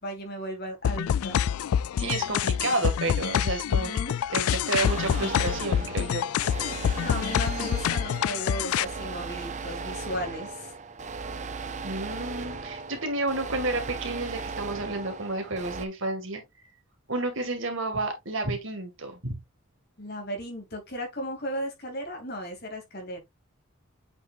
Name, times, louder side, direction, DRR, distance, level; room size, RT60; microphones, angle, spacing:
voice 1, 0.0-1.4 3.6-4.2 7.0-10.7 20.0-23.2, equal, 45° left, 2.9 m, -35 dB
sound 1, 0.8-8.8, left 9 dB, 80° left, 0.3 m, -26 dB
voice 2, 2.0-3.9 4.3-6.3 11.8-16.4 17.1-19.4, right 2 dB, 60° right, 2.2 m, -30 dB
sound 2, 4.8-15.9, right 4 dB, 35° right, 0.6 m, -37 dB
8.2 x 5.5 x 2.6 m
head